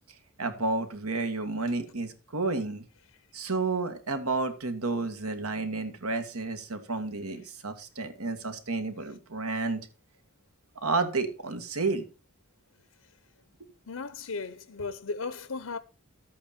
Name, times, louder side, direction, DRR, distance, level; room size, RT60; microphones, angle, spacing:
voice 1, 0.4-2.8 3.3-9.9 10.8-12.0, right 3 dB, 90° right, 2.0 m, -31 dB
voice 2, 13.9-15.8, left 4 dB, 80° left, 0.7 m, -36 dB
13.0 x 8.7 x 4.3 m
head